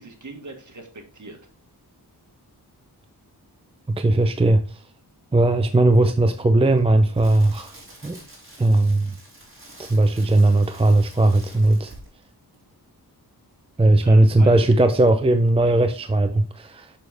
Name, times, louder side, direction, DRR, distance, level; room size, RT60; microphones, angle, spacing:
voice 1, 0.0-1.4 14.0-14.7, right 2 dB, 50° right, 1.8 m, -40 dB
voice 2, 3.9-4.8 5.3-7.7 8.0-8.2 8.6-9.1 9.8-11.9 13.8-16.9, right 2 dB, 15° right, 0.5 m, -18 dB
Crackle, 6.8-12.3 12.5-12.7, right 1 dB, 30° right, 4.0 m, -46 dB
6.6 x 6.3 x 3.4 m
wide cardioid pair, 85°, 39 cm